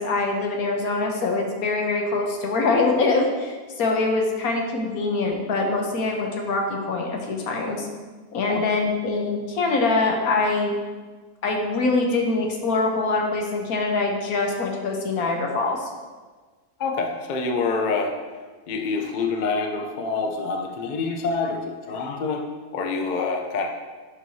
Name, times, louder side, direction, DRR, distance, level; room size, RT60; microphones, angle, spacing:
voice 1, 0.0-7.9 8.3-10.7 11.4-15.9, left 3 dB, 70° left, 1 dB, 1.3 m, -24 dB
voice 2, 16.8-18.1 18.7-22.5 22.7-23.7, left 4 dB, 50° left, 3 dB, 0.5 m, -26 dB
10.5 x 4.6 x 2.8 m, 1.4 s
omnidirectional pair, 1.6 m